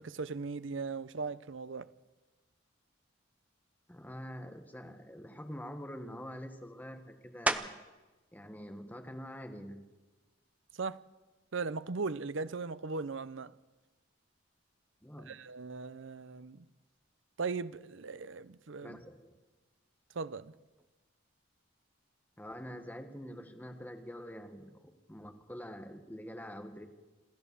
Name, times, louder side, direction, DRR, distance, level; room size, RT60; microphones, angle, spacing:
voice 1, 0.0-1.9 10.8-11.0 11.5-13.5 15.3-16.7 17.4-19.0 20.1-20.5, right 4 dB, 70° right, 0.7 m, -38 dB
voice 2, 3.9-7.8 8.3-9.8 15.0-15.4 18.8-19.4 22.4-26.8, equal, 10° left, 1.4 m, -46 dB
sound 1, 7.5-8.1 8.6-13.0 13.6-18.7 19.0-24.7, right 2 dB, 5° right, 0.7 m, -44 dB
27.0 x 14.0 x 6.9 m
head